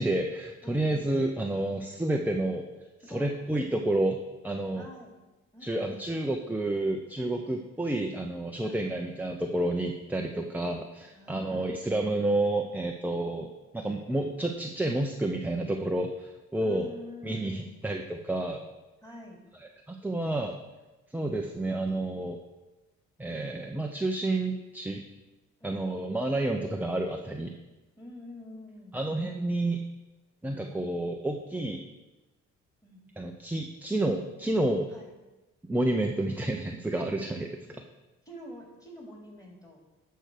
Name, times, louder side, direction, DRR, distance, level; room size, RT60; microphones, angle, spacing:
voice 1, 0.0-2.6 3.1-4.9 5.6-13.5 13.7-16.9 17.2-18.7 19.6-20.6 21.1-22.4 23.2-25.0 25.6-27.5 28.9-29.8 30.4-31.8 33.2-34.9 35.7-37.8, right 1 dB, 5° right, 2 dB, 0.8 m, -30 dB
voice 2, 0.6-0.9 3.0-3.3 4.7-5.1 5.5-6.0 8.6-8.9 11.1-11.7 16.6-17.7 19.0-19.4 25.6-25.8 28.0-29.0 32.8-33.0 34.9-35.1 38.2-39.8, left 1 dB, 10° left, -1 dB, 3.4 m, -46 dB
11.5 x 4.5 x 6.6 m, 1.1 s
cardioid pair, 90°, 30 cm